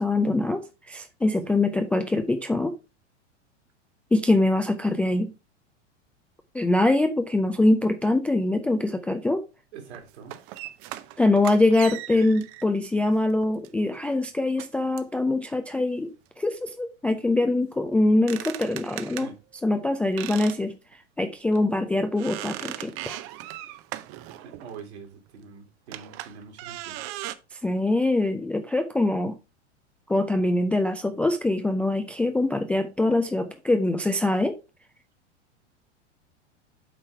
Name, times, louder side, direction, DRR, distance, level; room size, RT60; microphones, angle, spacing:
voice 1, 0.0-2.7 4.1-5.3 6.5-9.5 11.2-16.1 16.4-19.3 19.6-20.8 21.2-23.2 27.6-29.3 30.1-34.6, left 2 dB, 5° left, 0.3 m, -23 dB
voice 2, 9.7-10.4 19.2-19.4 24.4-27.0, right 5 dB, 65° right, 2.7 m, -44 dB
wood bathroom door creaks, 9.9-12.6 13.4-13.7 14.6-14.7 15.0-15.1 18.0-19.3 20.2-20.6 20.9-21.0 21.5-21.6 22.2-24.8 25.9-27.4, right 15 dB, 40° right, 0.7 m, -38 dB
7.9 x 4.4 x 4.5 m
figure-of-eight pair, 90°, 36 cm